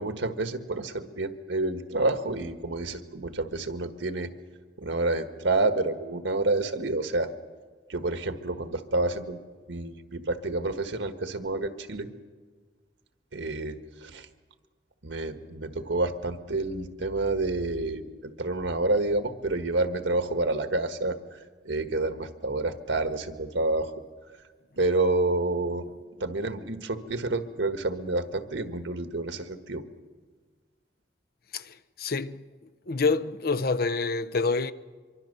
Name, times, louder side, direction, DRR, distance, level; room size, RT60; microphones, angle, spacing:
voice 1, 0.0-4.3 4.8-7.3 7.9-9.4 9.7-12.1 13.3-14.3 15.0-23.9 24.8-25.8 26.2-29.8, right 2 dB, 85° right, 1.5 m, -29 dB
voice 2, 31.5-32.4 32.9-34.7, left 4 dB, 55° left, 0.7 m, -27 dB
24.5 x 24.0 x 6.7 m
head